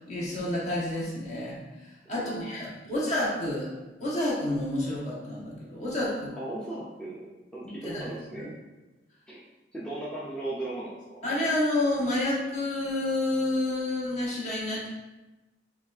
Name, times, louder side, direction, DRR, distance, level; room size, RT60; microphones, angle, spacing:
voice 1, 0.1-3.7 4.0-6.3 7.8-8.1 8.4-8.5 11.2-14.9, left 1 dB, 40° left, -5 dB, 1.1 m, -29 dB
voice 2, 2.1-2.6 2.9-3.1 6.4-8.5 9.3-9.4 9.7-11.2, right 2 dB, 5° left, -8 dB, 0.5 m, -37 dB
6.6 x 2.4 x 2.4 m, 1.1 s
head